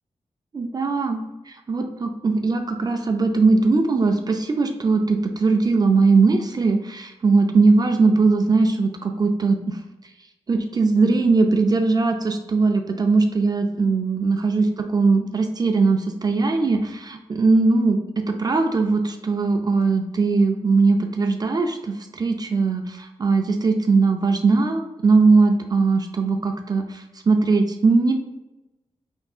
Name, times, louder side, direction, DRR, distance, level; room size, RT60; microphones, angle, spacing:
voice 1, 0.5-1.2 1.5-9.8 10.5-28.1, right 3 dB, 35° right, 4 dB, 0.4 m, -20 dB
5.4 x 3.5 x 2.4 m, 1.0 s
wide cardioid pair, 135°, 11 cm